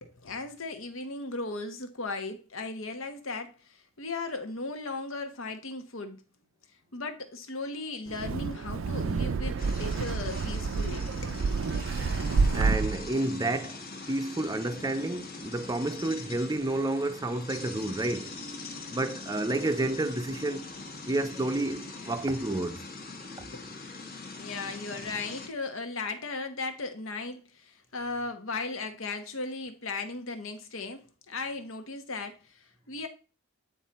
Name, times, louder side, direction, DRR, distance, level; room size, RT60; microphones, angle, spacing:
voice 1, 0.0-6.2 6.9-11.4 23.5-23.7 24.3-33.1, left 3 dB, 80° left, 1.2 m, -37 dB
Wind, 8.1-13.1, right 4 dB, 75° right, 0.4 m, -29 dB
sound 1, 9.6-25.5, left 3 dB, 50° left, 1.3 m, -42 dB
voice 2, 12.5-13.8 14.1-18.3 18.9-20.7 21.1-22.8, right 2 dB, 20° right, 0.5 m, -30 dB
9.1 x 3.9 x 4.2 m
head